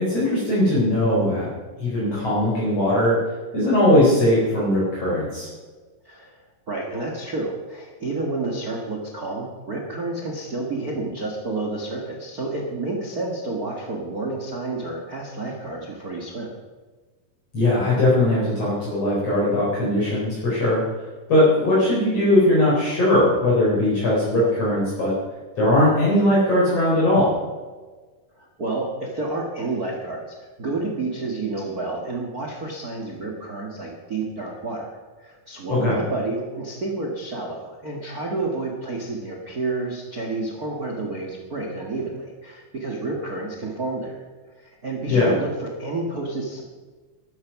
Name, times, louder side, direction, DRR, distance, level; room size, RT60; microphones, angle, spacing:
voice 1, 0.0-1.5 1.8-5.5 17.5-25.1 25.6-27.3 35.7-36.0 45.1-45.3, left 1 dB, 45° left, -7 dB, 5.2 m, -20 dB
voice 2, 6.0-6.4 6.7-16.5 28.3-34.9 35.2-44.2 44.5-46.6, right 2 dB, 35° right, 0 dB, 1.5 m, -30 dB
14.0 x 13.5 x 5.9 m, 1.4 s
omnidirectional pair, 3.9 m